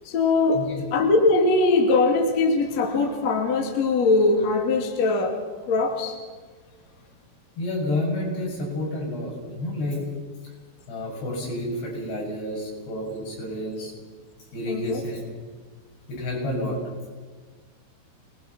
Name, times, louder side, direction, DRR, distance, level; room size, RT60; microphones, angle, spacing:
voice 1, 0.1-0.6 0.9-5.4 5.7-6.1 14.7-15.0, left 3 dB, 45° left, 3 dB, 2.9 m, -21 dB
voice 2, 7.6-10.1 10.9-13.9 14.5-15.3 16.1-16.8, left 1 dB, 70° left, -2 dB, 9.7 m, -30 dB
27.0 x 21.5 x 6.0 m, 1.4 s
omnidirectional pair, 5.0 m